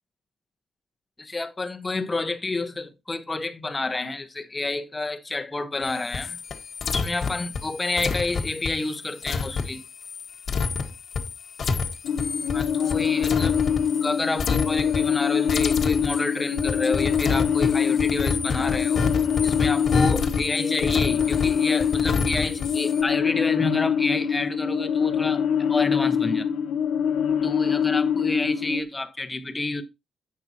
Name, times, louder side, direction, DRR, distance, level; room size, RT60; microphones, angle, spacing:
voice 1, 1.2-6.4 6.9-9.8 12.5-13.6 14.0-19.0 19.4-26.5 27.4-29.8, left 2 dB, 20° left, 1.2 m, -29 dB
sound 1, 5.8-14.1 14.4-15.2 15.5-23.0, left 5 dB, 45° left, 1.4 m, -29 dB
sound 2, 12.0-28.8, left 7 dB, 85° left, 0.8 m, -24 dB
10.5 x 8.6 x 2.9 m
cardioid pair, 140°, 0 cm